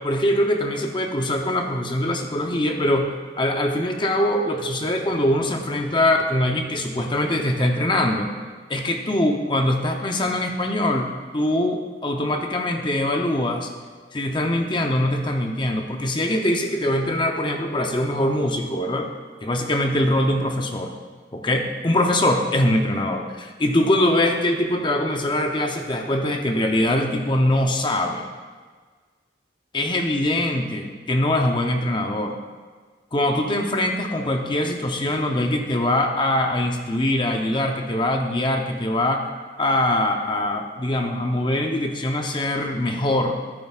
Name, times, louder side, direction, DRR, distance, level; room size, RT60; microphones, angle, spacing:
voice 1, 0.0-3.1 3.4-8.3 8.7-13.7 14.1-19.1 19.4-20.9 21.3-28.3 29.7-32.4 33.1-39.3 39.6-43.4, left 1 dB, 25° left, 3 dB, 0.6 m, -23 dB
13.0 x 9.8 x 2.4 m, 1.5 s
head